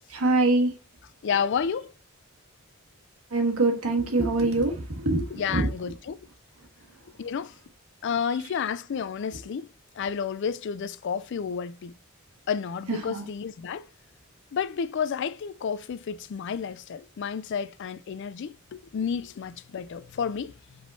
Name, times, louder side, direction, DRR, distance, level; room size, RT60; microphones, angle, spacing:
voice 1, 0.1-0.7 3.3-5.6 12.9-13.2, right 2 dB, 90° right, 1.4 m, -24 dB
voice 2, 1.2-1.9 5.3-6.2 7.2-7.5 8.0-9.7 10.0-11.9 12.5-13.9 14.5-20.6, left 7 dB, 55° left, 0.3 m, -31 dB
5.0 x 3.7 x 2.6 m
head